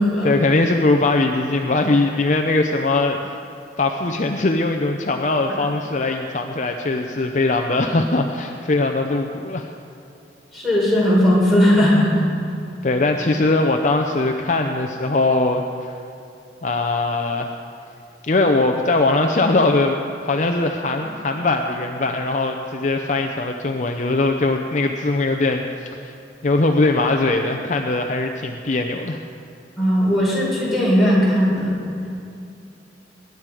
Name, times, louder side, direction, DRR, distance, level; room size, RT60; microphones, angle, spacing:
voice 1, 0.2-3.4 3.8-9.7 12.8-16.0 16.6-17.6 18.2-26.2 26.4-29.2, left 2 dB, 40° left, 4 dB, 0.6 m, -21 dB
voice 2, 10.5-12.3 29.8-31.8, equal, ahead, -8 dB, 4.4 m, -17 dB
20.0 x 10.5 x 4.9 m, 2.5 s
head